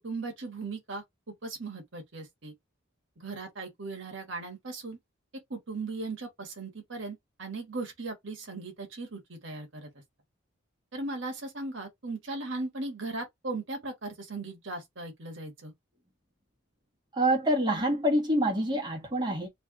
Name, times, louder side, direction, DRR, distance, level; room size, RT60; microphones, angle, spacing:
voice 1, 0.0-1.0 1.4-2.5 3.2-5.0 5.5-9.9 10.9-15.7, right 3 dB, 65° right, 1.2 m, -38 dB
voice 2, 17.1-19.5, right 1 dB, 20° right, 1.4 m, -26 dB
3.3 x 2.6 x 3.6 m
head